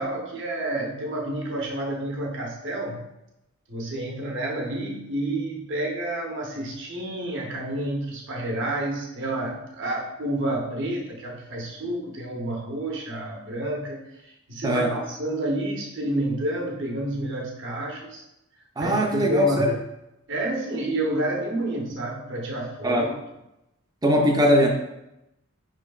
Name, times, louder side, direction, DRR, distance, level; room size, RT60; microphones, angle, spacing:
voice 1, 0.0-3.1 3.7-14.0 14.5-18.2 18.8-19.7 20.3-23.2, right 1 dB, 55° right, 0 dB, 0.8 m, -29 dB
voice 2, 14.6-15.0 18.8-19.7 22.8-23.1 24.0-24.7, equal, 20° right, 2 dB, 0.4 m, -20 dB
5.5 x 3.2 x 2.3 m, 0.89 s
head